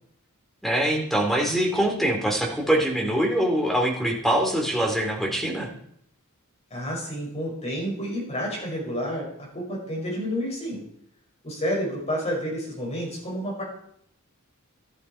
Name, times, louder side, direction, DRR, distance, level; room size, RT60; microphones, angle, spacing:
voice 1, 0.6-5.7, right 1 dB, ahead, 0 dB, 2.7 m, -23 dB
voice 2, 6.7-10.9 11.4-13.6, equal, 30° left, -2 dB, 5.7 m, -30 dB
12.5 x 12.0 x 4.4 m, 0.69 s
head